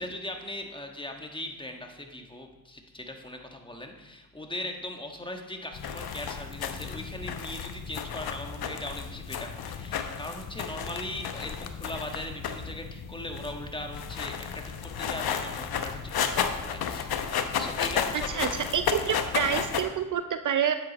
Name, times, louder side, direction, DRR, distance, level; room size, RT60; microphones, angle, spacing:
voice 1, 0.0-17.1 17.6-18.4, left 1 dB, 10° left, 3 dB, 1.5 m, -39 dB
sound 1, 5.7-19.8, left 7 dB, 60° left, 1.0 m, -33 dB
voice 2, 18.1-20.7, right 8 dB, 50° right, 9 dB, 0.6 m, -28 dB
9.2 x 8.0 x 4.1 m, 1.0 s
supercardioid pair, 55°, 41 cm